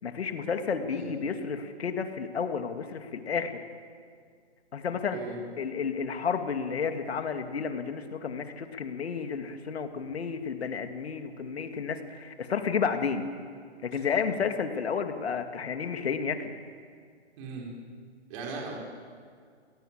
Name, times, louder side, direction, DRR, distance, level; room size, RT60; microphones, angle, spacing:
voice 1, 0.0-3.6 4.7-5.2 5.6-13.3 13.8-16.5, left 6 dB, 65° left, 6 dB, 2.6 m, -31 dB
voice 2, 17.4-17.7 18.3-18.8, right 4 dB, 30° right, -1 dB, 5.0 m, -38 dB
29.0 x 18.0 x 7.7 m, 2.1 s
hypercardioid pair, 150°, 34 cm